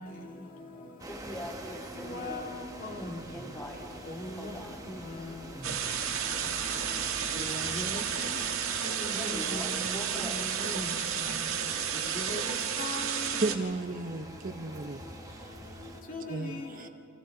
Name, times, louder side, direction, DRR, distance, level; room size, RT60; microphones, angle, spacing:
sound 1, 1.0-16.0, right 1 dB, 15° right, 1.3 m, -46 dB
voice 1, 1.1-2.5 3.2-4.1 4.3-4.9 9.1-10.4, equal, 15° left, 3.5 m, -42 dB
voice 2, 2.0-2.4 2.8-3.2 4.1-4.5 7.3-8.3 8.8-9.7 10.3-10.9 12.2-13.3 16.1-16.6, left 1 dB, 40° left, 2.1 m, -38 dB
sound 2, 5.6-13.5, right 8 dB, 70° right, 1.7 m, -32 dB
voice 3, 13.4-15.0 15.3-16.0 16.3-16.9, right 3 dB, 40° right, 0.7 m, -35 dB
29.0 x 25.5 x 3.8 m
head